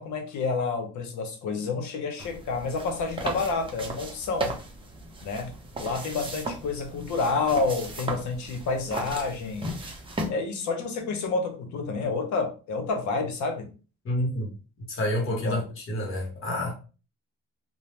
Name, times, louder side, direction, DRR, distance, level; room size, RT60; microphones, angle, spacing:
voice 1, 0.0-4.5 5.2-5.5 5.8-9.7 10.3-13.7 15.3-15.6, left 4 dB, 70° left, 0.8 m, -29 dB
sound 1, 2.2-10.3, right 2 dB, 15° right, 0.6 m, -36 dB
voice 2, 14.0-14.5 14.9-16.7, left 1 dB, 45° left, 1.1 m, -28 dB
2.6 x 2.0 x 3.1 m
cardioid pair, 120°, 30 cm